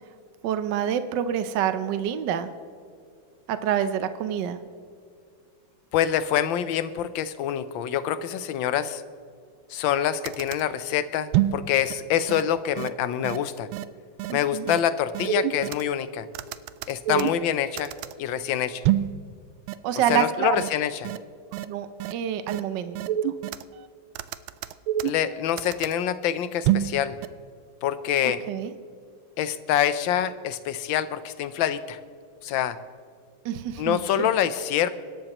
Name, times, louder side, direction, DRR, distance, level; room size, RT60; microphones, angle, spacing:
voice 1, 0.4-2.5 3.5-4.6 14.3-14.7 17.1-17.3 19.8-20.6 21.7-23.0 28.2-28.7 33.4-34.3, right 9 dB, 70° right, 10 dB, 1.3 m, -27 dB
voice 2, 5.9-9.0 9.7-13.7 14.3-16.3 16.9-17.9 18.2-18.8 20.1-21.1 25.0-27.2 27.8-28.4 29.4-32.0 32.4-32.8 33.8-34.9, left 10 dB, 75° left, 13 dB, 1.4 m, -26 dB
sound 1, 9.9-10.0 10.3-10.6 11.3-11.6 11.9-12.0 12.3-12.4 12.8-12.9 13.2-13.4 13.7-13.8 14.2-14.3 14.7-14.8 15.1-15.8 16.3-17.5 17.8-18.1 18.8-19.1 19.7-19.8 20.1-20.2 20.6-20.7 21.0-21.2 21.5-21.6 22.0-22.1 22.5-22.6 23.0-23.6 24.2-25.3 25.6-25.9 26.6-26.9 27.2-27.3, right 12 dB, 90° right, 1.4 m, -26 dB
24.0 x 12.0 x 3.0 m, 2.2 s
omnidirectional pair, 2.2 m